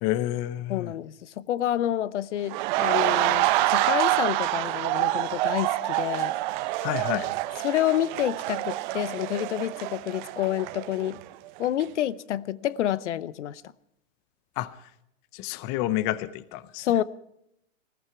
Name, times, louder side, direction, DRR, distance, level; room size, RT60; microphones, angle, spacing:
voice 1, 0.0-0.9 6.8-7.3 14.6-14.9 15.3-16.9, left 14 dB, 25° left, 0.6 m, -29 dB
voice 2, 0.7-6.3 7.6-11.2 11.6-13.6 16.8-17.0, left 12 dB, 60° left, 0.8 m, -28 dB
sound 1, 2.5-11.3 11.6-11.8, right 17 dB, 35° right, 0.8 m, -27 dB
20.0 x 14.5 x 4.6 m
hypercardioid pair, 130°, 40 cm